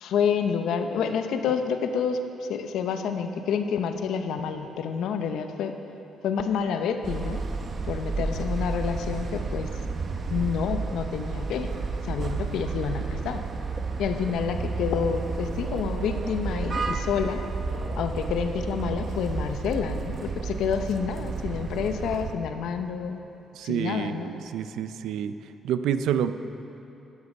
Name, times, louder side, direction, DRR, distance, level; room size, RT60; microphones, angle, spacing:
voice 1, 0.0-5.8 6.2-7.4 7.9-9.7 10.3-11.7 12.0-13.4 14.0-17.4 18.0-23.2 23.6-24.3, left 6 dB, 80° left, 7 dB, 0.7 m, -28 dB
sound 1, 7.0-22.3, right 4 dB, 45° right, 0.9 m, -31 dB
voice 2, 23.5-25.4 25.6-26.3, right 9 dB, 85° right, 12 dB, 0.5 m, -28 dB
13.5 x 9.8 x 5.4 m, 2.9 s
cardioid pair, 90°, 0 cm